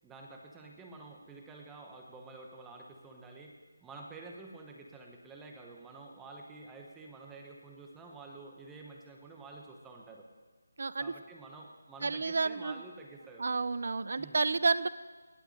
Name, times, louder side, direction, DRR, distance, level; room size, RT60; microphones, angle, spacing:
voice 1, 0.0-3.5 3.8-10.2 11.0-13.5 14.1-14.4, right 3 dB, 5° right, 0 dB, 0.9 m, -49 dB
voice 2, 10.8-11.1 12.0-12.7 13.4-14.9, right 4 dB, 55° right, 16 dB, 0.6 m, -30 dB
19.0 x 8.0 x 6.6 m, 1.4 s
figure-of-eight pair, 170°, 0 cm